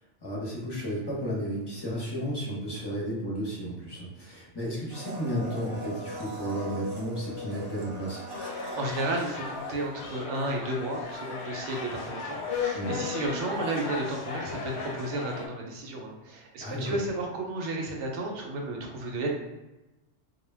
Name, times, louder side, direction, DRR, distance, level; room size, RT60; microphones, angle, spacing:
voice 1, 0.2-8.3 12.7-12.9 16.6-17.0, equal, 25° left, -6 dB, 0.6 m, -33 dB
Domestic sounds home sounds, 4.9-10.2 10.4-10.5, equal, 50° right, 0.4 m, -40 dB
sound 1, 8.3-15.5, left 5 dB, 65° left, 0.8 m, -36 dB
voice 2, 8.5-19.3, right 2 dB, 70° right, 0 dB, 0.9 m, -33 dB
2.2 x 2.2 x 3.2 m, 1.0 s
omnidirectional pair, 1.3 m